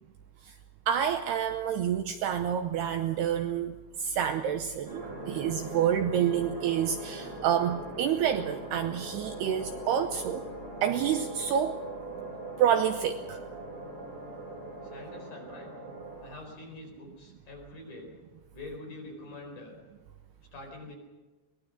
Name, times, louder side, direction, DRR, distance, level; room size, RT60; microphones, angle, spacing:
voice 1, 0.9-10.5 10.8-11.8 12.6-13.4, right 9 dB, 75° right, 7 dB, 2.6 m, -28 dB
sound 1, 4.8-16.2, right 2 dB, 20° right, 7.7 m, -41 dB
voice 2, 14.8-15.7 16.2-18.1 18.5-19.7 20.5-21.0, left 2 dB, 45° left, 1 dB, 5.8 m, -45 dB
24.0 x 20.5 x 6.6 m, 1.2 s
omnidirectional pair, 5.4 m